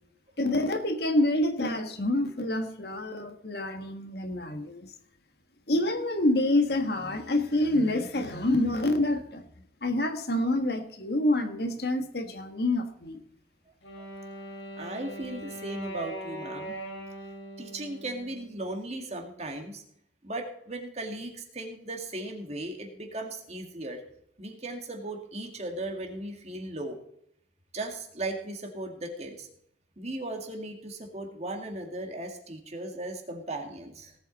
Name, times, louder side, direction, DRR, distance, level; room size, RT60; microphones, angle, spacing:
voice 1, 0.4-4.9 5.7-9.4 9.8-13.2, left 1 dB, 60° left, 7 dB, 1.5 m, -27 dB
Wind instrument woodwind instrument, 13.8-18.9, right 1 dB, 85° left, 4.9 m, -41 dB
voice 2, 14.8-16.7 17.6-19.8 20.2-24.0 24.4-27.0 27.7-29.5 30.0-34.2, right 1 dB, 35° right, 3 dB, 2.1 m, -37 dB
18.5 x 8.3 x 4.1 m, 0.73 s
head